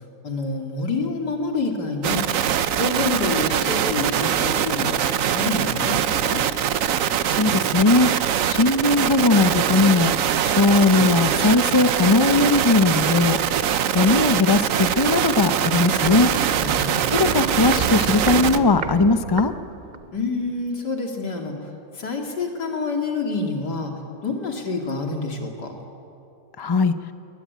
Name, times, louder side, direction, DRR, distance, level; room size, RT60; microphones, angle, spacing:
voice 1, 0.2-2.2 2.8-6.4 16.5-17.0 20.1-21.6 21.9-23.9 24.2-25.7, left 3 dB, 75° left, 2 dB, 3.2 m, -27 dB
sound 1, 2.0-18.6, right 9 dB, 60° right, 1.0 m, -22 dB
voice 2, 7.4-8.1 8.5-10.1 10.4-13.4 13.9-16.3 17.1-19.5 26.6-26.9, left 3 dB, 30° left, 10 dB, 0.4 m, -19 dB
Walk footsteps, 15.5-20.2 20.5-20.6, right 4 dB, 35° right, 0.8 m, -30 dB
21.5 x 20.0 x 9.5 m, 2.7 s
omnidirectional pair, 1.8 m